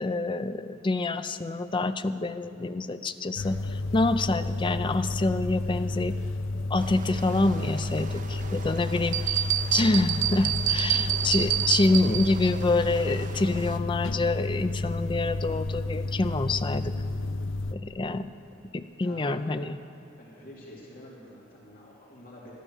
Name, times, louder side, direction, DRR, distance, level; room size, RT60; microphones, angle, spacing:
voice 1, 0.0-6.1 6.7-9.2 9.7-16.9 17.7-18.3 18.7-19.8, left 2 dB, 25° left, 10 dB, 0.4 m, -27 dB
sound 1, 3.4-17.8, left 2 dB, 75° left, 0.5 m, -31 dB
sound 2, 6.8-13.8, right 4 dB, 40° right, 0.6 m, -44 dB
voice 2, 8.3-9.2 19.0-19.6 20.2-22.5, left 1 dB, 50° left, -5 dB, 2.8 m, -48 dB
sound 3, 9.1-12.5, right 12 dB, 80° right, 0.7 m, -27 dB
13.5 x 12.5 x 6.4 m, 2.7 s
head